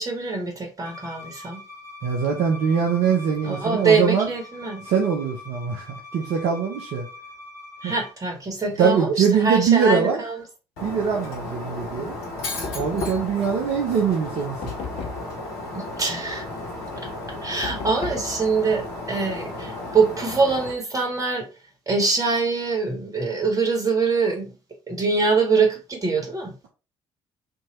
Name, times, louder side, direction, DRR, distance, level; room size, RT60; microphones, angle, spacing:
voice 1, 0.0-1.6 3.4-4.8 7.8-10.4 12.9-13.1 15.7-16.4 17.4-21.5 21.9-24.5 24.9-26.5, right 4 dB, 25° right, 1.1 m, -24 dB
Bowed string instrument, 0.8-8.1, left 2 dB, 20° left, 1.6 m, -42 dB
voice 2, 2.0-4.3 4.9-7.1 7.8-7.9 8.8-10.2 10.8-12.1 12.7-14.7, right 6 dB, 55° right, 0.6 m, -22 dB
Shatter, 10.8-20.7, left 2 dB, 70° left, 0.8 m, -34 dB
Knock, 12.6-13.5 14.6-15.4 17.6-18.4, left 4 dB, 50° left, 0.5 m, -34 dB
2.7 x 2.2 x 2.9 m
figure-of-eight pair, 45°, 14 cm